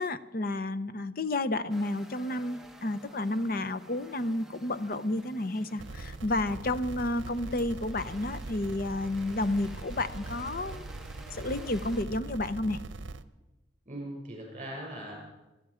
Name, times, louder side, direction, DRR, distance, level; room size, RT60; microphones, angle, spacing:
voice 1, 0.0-10.9 11.3-12.8, left 2 dB, 50° left, 13 dB, 0.7 m, -31 dB
sound 1, 1.7-12.0, right 1 dB, ahead, 0.9 m, -52 dB
sound 2, 5.8-13.2, right 2 dB, 80° right, 0.7 m, -41 dB
voice 2, 13.8-15.2, right 1 dB, 35° right, -1 dB, 6.7 m, -40 dB
28.0 x 10.0 x 5.0 m, 1.1 s
head